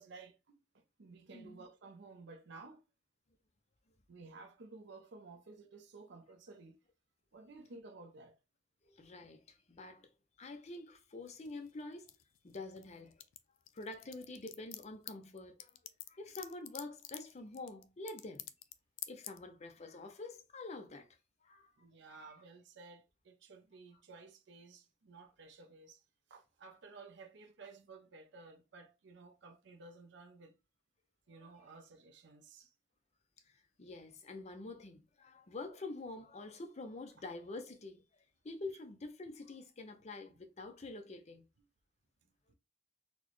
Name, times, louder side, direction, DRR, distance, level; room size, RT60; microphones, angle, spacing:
voice 1, 0.0-2.8 4.1-6.8 7.3-8.4 21.8-26.0 26.3-30.6 31.3-32.7 42.5-42.6, right 3 dB, 60° right, 0.5 m, -55 dB
voice 2, 1.3-1.6 8.8-10.1 10.4-12.1 12.4-13.1 13.7-15.8 16.1-18.5 19.1-21.1 21.4-21.7 31.4-31.5 33.5-38.0 38.4-41.4, left 2 dB, 35° left, 0.5 m, -47 dB
sound 1, 11.3-12.9 13.1-18.7 19.0-19.4, left 13 dB, 85° left, 0.4 m, -47 dB
4.1 x 2.2 x 3.0 m
head